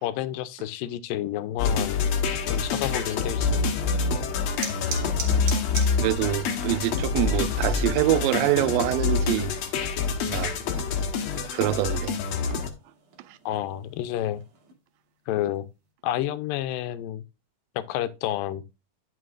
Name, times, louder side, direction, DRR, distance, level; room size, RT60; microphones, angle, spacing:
voice 1, 0.0-2.0 2.5-3.6 6.9-7.0 13.5-14.4 15.3-15.7 16.0-17.2 17.8-18.6, left 12 dB, 85° left, 2.4 m, -30 dB
sound 1, 1.6-12.7, left 5 dB, 60° left, 2.0 m, -26 dB
sound 2, 3.6-14.7, right 5 dB, 65° right, 3.6 m, -43 dB
voice 2, 6.0-9.5 10.3-10.5 11.5-12.2, right 16 dB, 85° right, 2.3 m, -25 dB
11.0 x 6.6 x 2.5 m
omnidirectional pair, 3.9 m